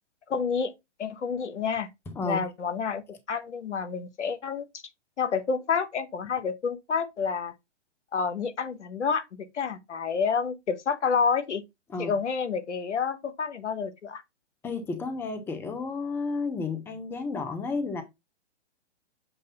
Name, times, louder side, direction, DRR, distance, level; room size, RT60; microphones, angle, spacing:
voice 1, 0.3-0.7 1.0-1.9 2.3-4.6 5.2-7.5 8.1-11.6 12.0-14.2, left 6 dB, 80° left, 1.1 m, -29 dB
voice 2, 2.1-2.5 11.9-12.1 14.6-18.0, left 3 dB, 5° left, 0.6 m, -32 dB
7.5 x 2.6 x 5.3 m
hypercardioid pair, 130°, 35 cm